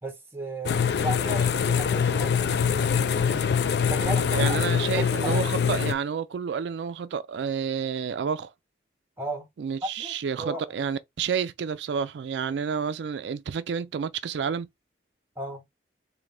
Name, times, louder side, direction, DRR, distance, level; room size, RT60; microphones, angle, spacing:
voice 1, 0.0-3.5 3.9-4.6 4.9-5.4 9.2-9.5 10.0-10.6 15.4-15.6, right 2 dB, 15° right, 1.1 m, -35 dB
sound 1, 0.6-5.9, left 7 dB, 65° left, 0.3 m, -24 dB
voice 2, 4.1-8.5 9.6-14.7, right 6 dB, 80° right, 0.4 m, -30 dB
3.8 x 2.7 x 3.3 m
head